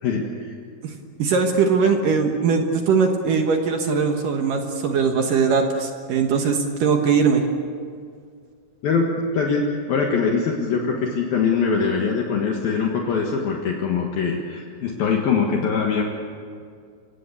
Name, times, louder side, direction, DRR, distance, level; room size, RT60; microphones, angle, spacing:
voice 1, 0.0-0.5 8.8-16.0, left 5 dB, 60° left, 0 dB, 3.1 m, -23 dB
voice 2, 1.2-7.4, right 5 dB, 60° right, 4 dB, 2.5 m, -20 dB
27.0 x 17.5 x 8.4 m, 2.2 s
omnidirectional pair, 5.2 m